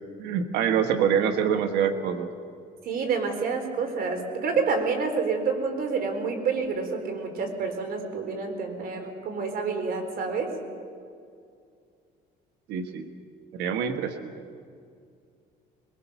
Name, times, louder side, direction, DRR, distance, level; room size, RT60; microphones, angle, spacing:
voice 1, 0.2-2.3 12.7-13.1 13.5-14.3, right 8 dB, 90° right, 7 dB, 1.4 m, -25 dB
voice 2, 2.8-10.5, right 4 dB, 65° right, 5 dB, 4.3 m, -28 dB
22.5 x 22.0 x 7.0 m, 2.3 s
cardioid pair, 110°, 17 cm